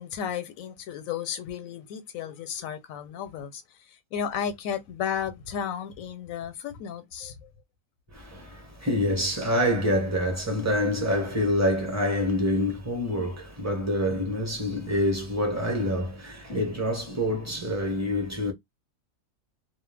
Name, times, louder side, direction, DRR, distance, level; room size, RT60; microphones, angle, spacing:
voice 1, 0.0-7.5, left 8 dB, 85° left, 1.0 m, -34 dB
voice 2, 8.1-18.5, equal, 15° right, 0.7 m, -26 dB
2.3 x 2.1 x 3.3 m
omnidirectional pair, 1.4 m